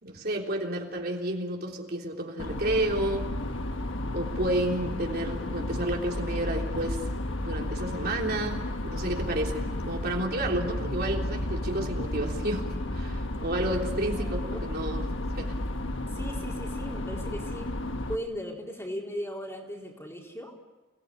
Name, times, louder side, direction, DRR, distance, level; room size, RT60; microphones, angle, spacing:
voice 1, 0.0-3.3 4.1-7.0 7.4-8.6 8.9-12.6 12.9-15.6, right 1 dB, 45° right, 0 dB, 3.5 m, -31 dB
sound 1, 2.4-18.1, left 1 dB, 60° left, 1.4 m, -33 dB
sound 2, 7.0-14.5, equal, 30° left, 3.4 m, -44 dB
voice 2, 14.2-14.7 16.1-17.7 18.1-20.5, equal, 15° left, -1 dB, 4.1 m, -37 dB
29.5 x 19.0 x 10.0 m, 1.2 s
head